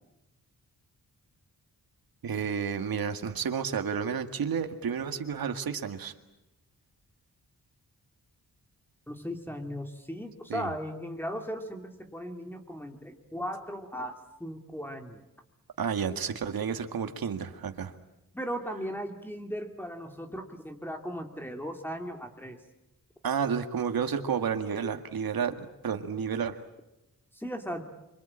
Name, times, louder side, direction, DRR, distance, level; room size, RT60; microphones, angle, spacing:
voice 1, 2.2-6.1 10.5-10.7 15.8-17.9 23.2-25.6 25.8-26.6, right 7 dB, 85° right, 7 dB, 2.0 m, -31 dB
voice 2, 9.1-15.2 18.3-22.6 27.3-27.8, equal, 5° left, 4 dB, 2.8 m, -37 dB
27.0 x 24.5 x 8.9 m, 0.94 s
wide cardioid pair, 110°, 35 cm